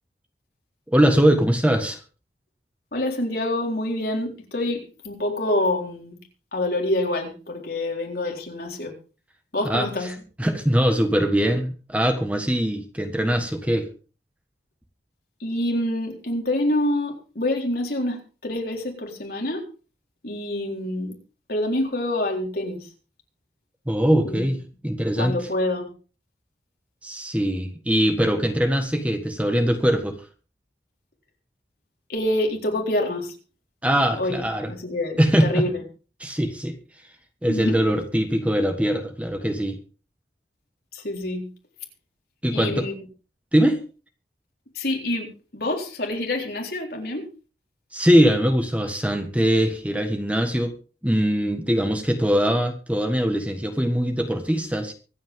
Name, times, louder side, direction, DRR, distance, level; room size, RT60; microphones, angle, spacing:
voice 1, 0.9-2.0 9.7-13.9 23.9-24.6 24.8-25.3 27.0-30.2 33.8-34.7 35.2-35.6 36.2-36.7 37.4-39.8 42.4-42.9 43.5-43.8 47.9-50.7 51.0-54.9, equal, 10° right, 5 dB, 1.4 m, -22 dB
voice 2, 2.9-6.2 6.5-8.9 9.5-10.1 15.4-19.7 20.2-21.2 21.5-22.9 24.2-24.6 25.2-25.9 32.1-33.3 34.2-34.4 34.7-35.8 37.5-37.8 40.9-41.5 42.5-42.9 44.7-45.3 45.5-47.3, left 1 dB, 55° left, 1 dB, 4.0 m, -26 dB
24.5 x 8.8 x 3.7 m, 0.36 s
head